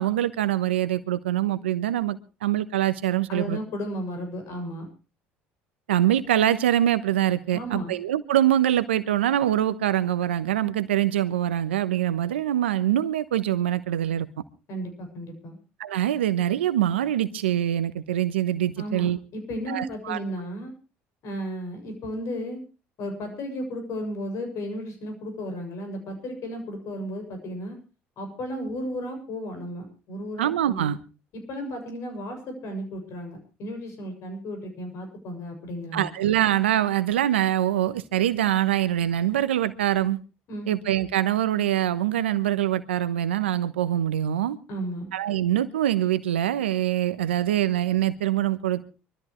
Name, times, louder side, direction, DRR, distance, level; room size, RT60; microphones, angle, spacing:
voice 1, 0.0-3.6 5.9-14.3 15.8-19.2 19.7-20.2 30.4-31.0 35.9-40.2 40.7-44.6 45.1-48.9, right 12 dB, 90° right, 14 dB, 1.0 m, -24 dB
voice 2, 3.3-4.9 7.5-8.0 14.7-15.6 18.8-20.7 21.2-22.6 23.0-27.8 28.2-30.9 31.3-36.2 40.5-40.7 44.7-45.1, equal, 60° left, 6 dB, 6.9 m, -34 dB
24.5 x 13.5 x 3.2 m, 0.31 s
hypercardioid pair, 65°, 6 cm